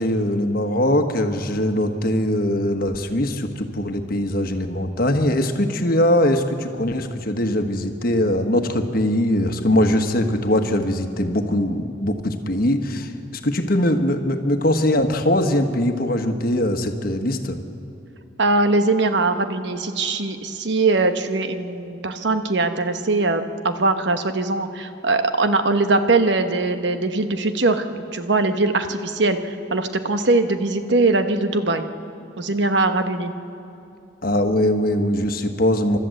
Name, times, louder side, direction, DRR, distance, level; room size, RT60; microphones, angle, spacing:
voice 1, 0.0-17.6 34.2-36.0, left 1 dB, 50° left, 6 dB, 1.4 m, -21 dB
voice 2, 18.4-31.8 32.4-33.3, right 3 dB, 65° right, 8 dB, 1.1 m, -21 dB
29.5 x 13.0 x 7.8 m, 2.7 s
head